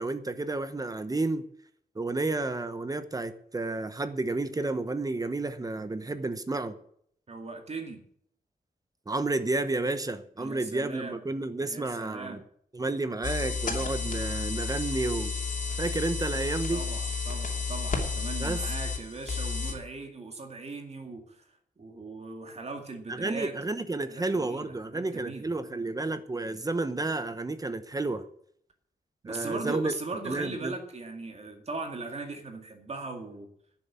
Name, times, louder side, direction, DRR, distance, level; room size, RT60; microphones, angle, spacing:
voice 1, 0.0-1.4 1.9-6.8 9.1-12.4 12.7-15.3 15.8-16.8 18.4-18.7 23.1-28.2 29.3-29.9 30.3-30.7, right 2 dB, 20° right, 0.9 m, -31 dB
voice 2, 7.3-8.0 10.4-11.2 11.6-12.4 16.7-21.5 21.8-23.5 24.1-25.5 29.2-33.5, right 3 dB, 40° right, 2.2 m, -39 dB
sound 1, 13.2-19.7, left 4 dB, 55° left, 2.9 m, -32 dB
11.0 x 7.0 x 9.7 m
wide cardioid pair, 150°, 16 cm